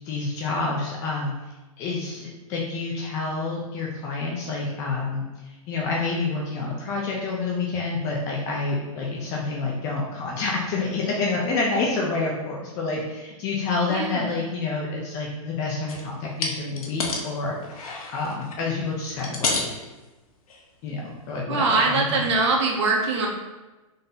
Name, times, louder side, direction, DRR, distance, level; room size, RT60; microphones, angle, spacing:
voice 1, 0.0-1.3 1.8-17.6 18.1-19.6 20.8-22.2, left 3 dB, 15° left, -2 dB, 0.3 m, -28 dB
voice 2, 13.9-14.3 21.5-23.3, right 3 dB, 50° right, 0 dB, 1.0 m, -22 dB
sound 1, 15.9-16.1 16.4-17.3 17.6-18.6 19.1-19.8 20.5-20.6 21.1-21.2, left 3 dB, 75° left, 0.8 m, -29 dB
3.8 x 2.7 x 3.8 m, 1.1 s
hypercardioid pair, 160°, 18 cm